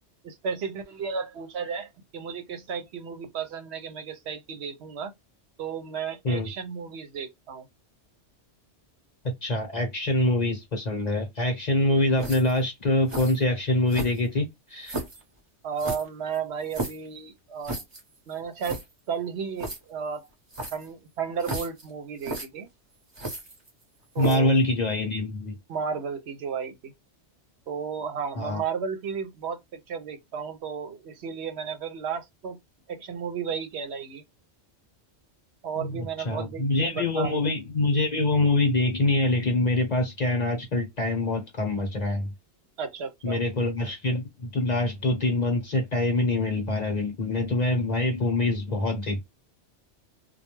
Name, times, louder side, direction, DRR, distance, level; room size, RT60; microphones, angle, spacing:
voice 1, 0.2-5.1 5.6-7.7 15.6-17.8 18.3-18.8 19.1-20.3 20.7-22.7 24.1-24.6 25.7-26.9 27.7-32.6 32.9-34.2 35.6-37.4 42.8-43.4, right 6 dB, 70° right, 0.8 m, -33 dB
voice 2, 9.4-15.0 24.2-25.6 28.4-28.6 35.8-42.3 43.2-49.2, left 2 dB, 40° left, 0.9 m, -25 dB
sound 1, 12.2-12.6 13.1-13.4 13.9-14.4 14.8-15.2 15.8-17.1 17.6-18.0 18.3-18.4 18.6-18.8 19.6-19.8 20.5-20.9 21.4-21.8 22.2-22.5 23.1-23.8 24.2-24.5, right 2 dB, 25° right, 0.8 m, -34 dB
2.3 x 2.2 x 2.9 m
omnidirectional pair, 1.2 m